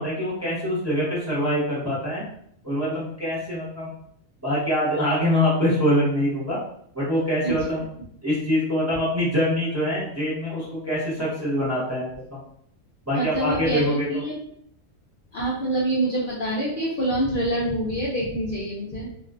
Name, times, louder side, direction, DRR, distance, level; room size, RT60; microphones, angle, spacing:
voice 1, 0.0-2.2 2.6-3.9 4.4-6.6 6.9-7.8 8.2-12.4 13.1-14.2, equal, 15° right, -8 dB, 0.7 m, -24 dB
voice 2, 13.1-14.4 15.3-19.1, right 1 dB, 70° left, -5 dB, 0.5 m, -26 dB
2.4 x 2.3 x 2.3 m, 0.67 s
omnidirectional pair, 1.5 m